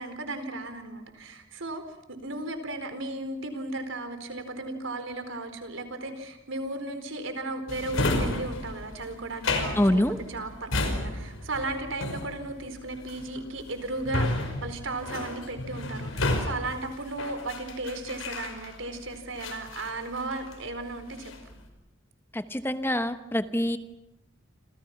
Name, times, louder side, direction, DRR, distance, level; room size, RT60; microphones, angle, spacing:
voice 1, 0.0-1.8 2.1-21.3, right 2 dB, 75° right, 8 dB, 4.4 m, -35 dB
Drawer open or close, 7.7-19.0 19.4-20.7 21.0-21.5, left 2 dB, 85° left, 5.2 m, -32 dB
voice 2, 9.7-10.2 22.3-23.8, left 1 dB, 10° left, 10 dB, 1.0 m, -25 dB
29.5 x 27.0 x 6.0 m, 0.87 s
head